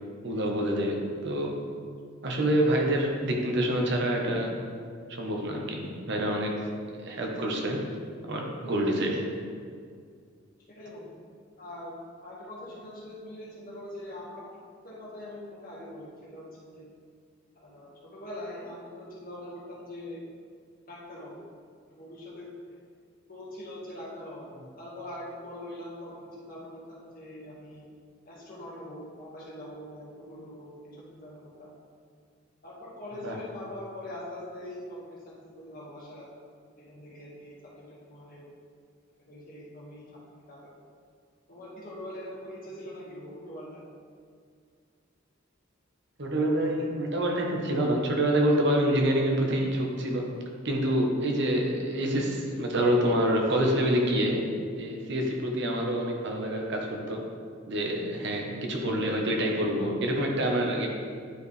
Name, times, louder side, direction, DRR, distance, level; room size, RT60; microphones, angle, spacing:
voice 1, 0.2-1.6 2.2-4.5 5.1-6.6 7.0-7.8 8.2-9.3 33.2-33.4 46.2-50.3 50.6-54.4 54.8-57.2 57.7-60.9, right 1 dB, 60° right, 1 dB, 1.0 m, -27 dB
voice 2, 10.7-11.2 11.6-12.0 12.2-14.6 14.8-16.9 17.6-20.2 20.9-21.4 21.9-22.5 23.3-24.5 24.8-27.9 28.3-31.7 32.6-36.3 36.8-38.5 39.3-40.8 41.5-43.8, left 1 dB, 45° left, -5 dB, 1.7 m, -43 dB
9.5 x 4.8 x 3.3 m, 2.1 s
head